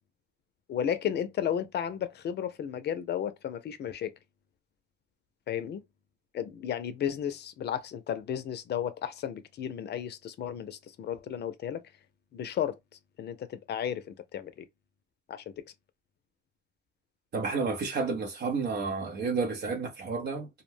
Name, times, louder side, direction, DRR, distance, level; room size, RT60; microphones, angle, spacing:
voice 1, 0.7-4.1 5.5-5.8 6.3-11.8 12.3-12.8 13.2-14.7 15.3-15.6, left 9 dB, 55° left, 0.5 m, -33 dB
voice 2, 17.3-20.5, right 4 dB, 55° right, 0.7 m, -31 dB
2.3 x 2.1 x 3.1 m
cardioid pair, 90°, 20 cm